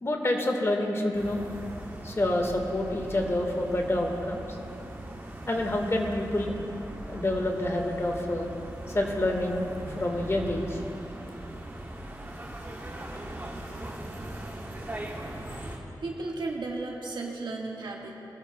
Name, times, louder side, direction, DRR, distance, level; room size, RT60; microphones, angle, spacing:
voice 1, 0.0-1.4 2.0-4.6 5.5-6.6 7.1-8.5 8.9-9.7 10.0-10.8 15.5-15.6, left 1 dB, 35° left, 2 dB, 1.5 m, -28 dB
sound 1, 1.1-15.8, right 1 dB, 30° right, 2.2 m, -40 dB
voice 2, 16.0-18.2, right 3 dB, 80° right, -1 dB, 1.5 m, -34 dB
19.0 x 13.5 x 2.2 m, 2.9 s
cardioid pair, 55°, 8 cm